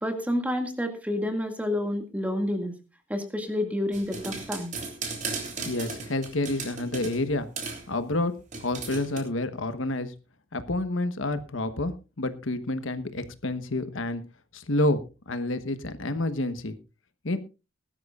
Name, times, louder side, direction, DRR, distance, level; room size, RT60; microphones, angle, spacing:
voice 1, 0.0-2.7 3.1-4.7, left 1 dB, 5° right, 6 dB, 2.0 m, -29 dB
sound 1, 3.9-7.2 7.6-7.9 8.5-9.2, right 4 dB, 40° right, 3.4 m, -36 dB
voice 2, 5.6-7.5 7.9-8.3 8.6-10.1 10.5-14.2 14.5-15.0 15.3-16.8 17.2-17.4, left 2 dB, 75° left, 11 dB, 1.2 m, -29 dB
20.0 x 12.5 x 2.4 m, 0.29 s
head